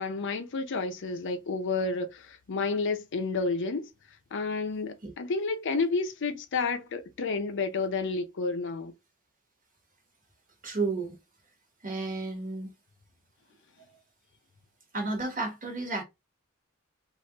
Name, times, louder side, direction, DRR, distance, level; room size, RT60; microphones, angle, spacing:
voice 1, 0.0-3.9 4.3-8.9, left 4 dB, 55° left, 0.5 m, -30 dB
voice 2, 10.6-11.2 11.8-12.7 14.9-16.0, right 3 dB, 40° right, 1.1 m, -32 dB
3.2 x 2.4 x 2.8 m
head